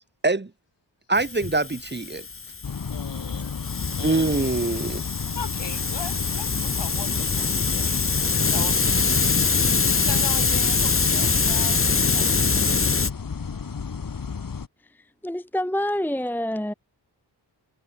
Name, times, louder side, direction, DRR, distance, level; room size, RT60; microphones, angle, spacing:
Hiss, 1.1-13.1, left 4 dB, 30° left, 1.2 m, -24 dB
voice 1, 1.1-2.2 4.0-5.0, right 3 dB, 25° right, 3.8 m, -24 dB
sound 1, 2.6-14.7, left 5 dB, 50° left, 2.8 m, -33 dB
voice 2, 2.9-4.5 5.3-9.3 9.8-12.9, left 6 dB, 80° left, 6.0 m, -40 dB
voice 3, 15.2-16.7, left 1 dB, 5° left, 1.1 m, -26 dB
wide cardioid pair, 145°, 43 cm